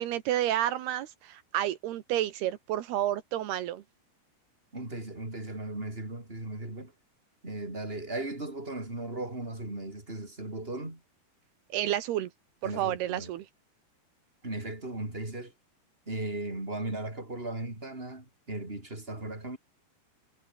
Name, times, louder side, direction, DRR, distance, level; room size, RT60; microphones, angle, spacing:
voice 1, 0.0-3.8 11.7-12.3 12.6-13.4, right 12 dB, 80° right, 3.3 m, -30 dB
voice 2, 4.7-6.9 7.4-11.0 12.6-13.3 14.4-15.5 16.1-19.6, right 2 dB, 15° right, 6.2 m, -37 dB
omnidirectional pair, 4.6 m